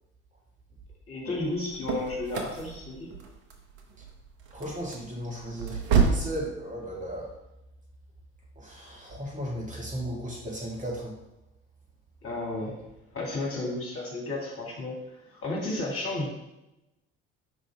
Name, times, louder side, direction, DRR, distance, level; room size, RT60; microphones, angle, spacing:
voice 1, 1.1-3.1 12.2-12.8 13.1-16.3, left 2 dB, 35° left, -2 dB, 2.0 m, -33 dB
sound 1, 1.4-6.4, right 5 dB, 65° right, 0.9 m, -29 dB
voice 2, 4.5-7.3 8.5-11.1, equal, 20° right, -3 dB, 1.8 m, -36 dB
5.6 x 4.9 x 3.4 m, 0.94 s
figure-of-eight pair, 60°, 37 cm